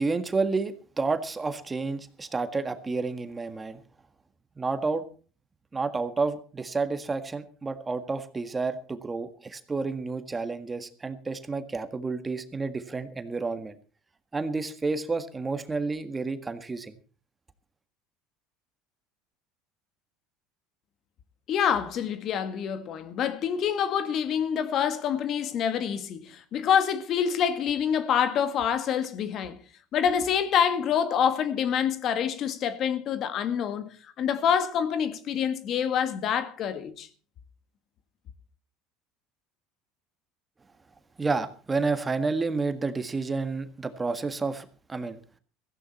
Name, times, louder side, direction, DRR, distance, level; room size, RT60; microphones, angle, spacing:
voice 1, 0.0-3.8 4.6-5.0 5.7-13.8 14.3-16.9 41.2-45.2, right 4 dB, 20° right, 1.7 m, -30 dB
voice 2, 21.5-29.6 29.9-37.1, left 8 dB, 50° left, 1.8 m, -26 dB
16.5 x 15.0 x 4.3 m
supercardioid pair, 100°, 0 cm